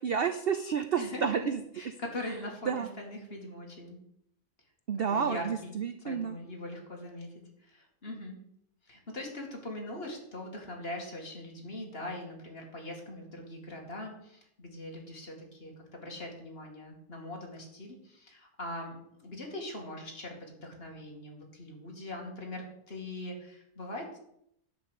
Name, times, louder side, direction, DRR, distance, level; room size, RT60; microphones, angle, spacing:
voice 1, 0.0-1.6 2.7-2.9 4.9-6.3, right 7 dB, 60° right, 9 dB, 0.6 m, -30 dB
voice 2, 1.0-1.5 1.7-4.0 5.1-5.7 6.0-7.3 7.6-8.4 8.8-19.0 19.2-24.2, left 1 dB, 35° left, 0 dB, 2.7 m, -41 dB
10.5 x 5.4 x 8.2 m, 0.72 s
omnidirectional pair, 1.7 m